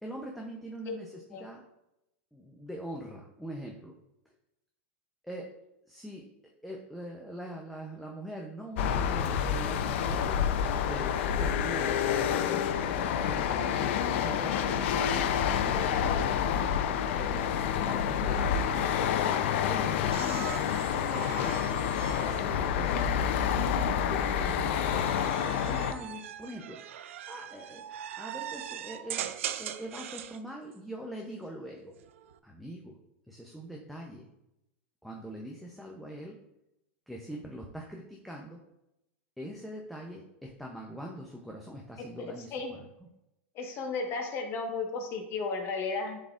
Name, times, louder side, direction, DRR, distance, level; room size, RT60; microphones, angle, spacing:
voice 1, 0.0-1.6 2.3-4.0 5.2-5.5 5.9-6.3 6.6-16.4 17.1-24.8 25.4-27.8 28.2-29.3 29.6-31.9 32.4-33.0 33.3-34.3 35.0-36.4 37.1-38.6 39.4-43.1, equal, ahead, -1 dB, 0.6 m, -43 dB
sound 1, 8.8-25.9, left 8 dB, 70° left, 0.5 m, -28 dB
sound 2, 20.1-23.4 24.2-30.4 31.9-32.4, right 10 dB, 85° right, 0.4 m, -41 dB
voice 2, 43.5-46.2, left 4 dB, 35° left, 2 dB, 1.4 m, -34 dB
11.0 x 3.9 x 2.5 m, 0.88 s
supercardioid pair, 130°, 7 cm